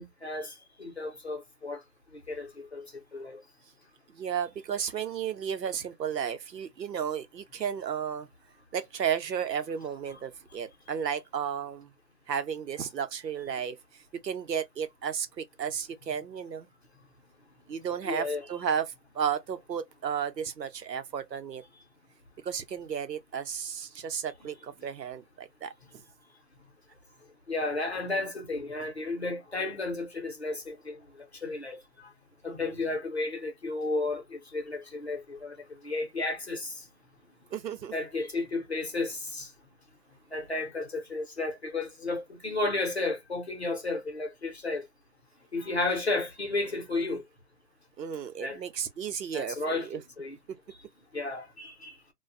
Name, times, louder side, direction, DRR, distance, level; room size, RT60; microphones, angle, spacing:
voice 1, 0.0-1.8 2.1-3.4 18.1-18.5 27.5-32.1 32.4-36.9 37.9-39.5 40.3-44.9 45.5-47.2 48.4-48.6 49.3-50.4 50.7-50.8 51.1-51.9, left 2 dB, 40° left, 0.7 m, -33 dB
voice 2, 4.1-8.3 8.7-11.9 12.3-13.8 14.2-16.7 17.7-21.6 22.4-25.7 32.5-32.8 37.5-37.9 48.0-50.0, right 8 dB, 80° right, 0.7 m, -33 dB
2.4 x 2.2 x 2.5 m
hypercardioid pair, 175°, 49 cm